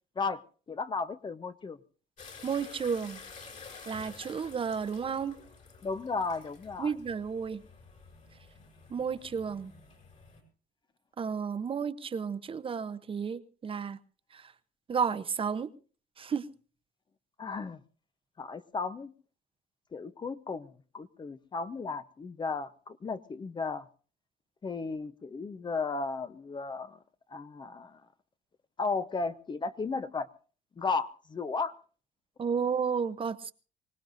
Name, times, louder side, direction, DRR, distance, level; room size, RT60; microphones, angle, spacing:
voice 1, 0.7-1.8 5.8-6.9 17.4-17.8 18.4-19.1 19.9-23.8 24.6-27.0 27.3-28.0 28.8-30.3 30.8-31.8, left 4 dB, 25° left, 0.8 m, -34 dB
sound 1, 2.2-10.4, left 4 dB, 45° left, 5.9 m, -51 dB
voice 2, 2.4-3.2 3.9-5.4 6.8-7.6 8.9-9.7 11.2-14.0 14.3-14.5 14.9-15.7 16.2-16.5 32.4-33.5, right 6 dB, 30° right, 0.8 m, -32 dB
25.0 x 18.0 x 2.6 m
cardioid pair, 110°, 17 cm